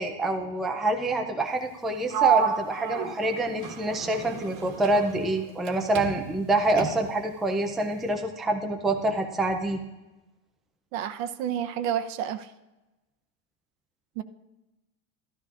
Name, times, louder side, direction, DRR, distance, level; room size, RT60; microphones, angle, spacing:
voice 1, 0.0-9.8, right 2 dB, ahead, 4 dB, 0.3 m, -26 dB
Sliding door, 2.1-5.7 5.9-7.3, right 9 dB, 60° right, 1.3 m, -30 dB
voice 2, 10.9-12.5 14.2-14.3, right 10 dB, 75° right, 10 dB, 0.8 m, -30 dB
13.0 x 13.0 x 2.4 m, 1.1 s
supercardioid pair, 150°, 39 cm